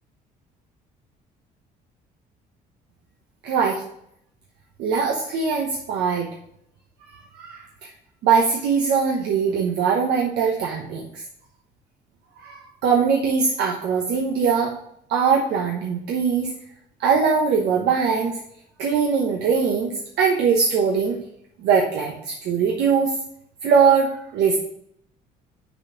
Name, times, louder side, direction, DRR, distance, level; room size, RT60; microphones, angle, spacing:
voice 1, 3.4-3.8 4.8-6.3 7.1-7.9 8.2-11.2 12.4-14.8 15.1-16.5 17.0-18.4 18.8-19.9 20.2-21.2 21.6-23.1 23.6-24.6, right 6 dB, 80° right, 0 dB, 1.0 m, -21 dB
6.1 x 4.3 x 6.2 m, 0.72 s
cardioid pair, 110°, 17 cm